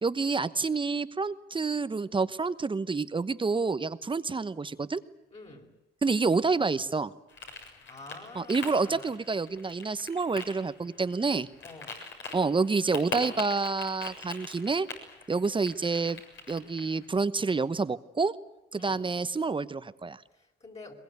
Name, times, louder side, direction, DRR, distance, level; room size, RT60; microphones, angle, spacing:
voice 1, 0.0-5.0 6.0-7.1 8.3-11.5 12.3-14.9 15.3-16.2 16.5-18.3 18.7-20.2, right 4 dB, 25° right, 13 dB, 1.0 m, -28 dB
voice 2, 5.3-5.7 7.9-9.2 11.6-12.0 18.8-19.0 20.3-20.9, left 3 dB, 35° left, 0 dB, 4.8 m, -48 dB
sound 1, 7.3-17.1, left 4 dB, 70° left, 7.2 m, -43 dB
22.0 x 21.5 x 9.6 m, 0.92 s
cardioid pair, 90°, 20 cm